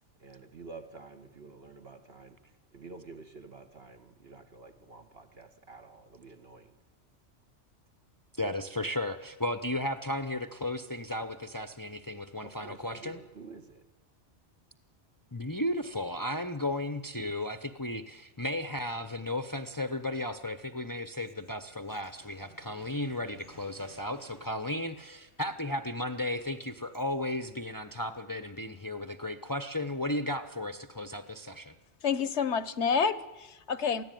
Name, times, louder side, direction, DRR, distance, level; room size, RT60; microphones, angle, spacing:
voice 1, 0.2-2.4 2.7-6.7 12.4-13.8, right 3 dB, 55° right, 6 dB, 1.9 m, -49 dB
voice 2, 8.4-13.2 15.3-31.7, left 1 dB, 20° left, 8 dB, 0.8 m, -34 dB
sound 1, 21.9-26.1, right 1 dB, 85° right, 7.0 m, -58 dB
voice 3, 32.0-34.0, left 6 dB, 70° left, 15 dB, 1.2 m, -29 dB
23.5 x 15.5 x 9.2 m, 1.1 s
omnidirectional pair, 1.2 m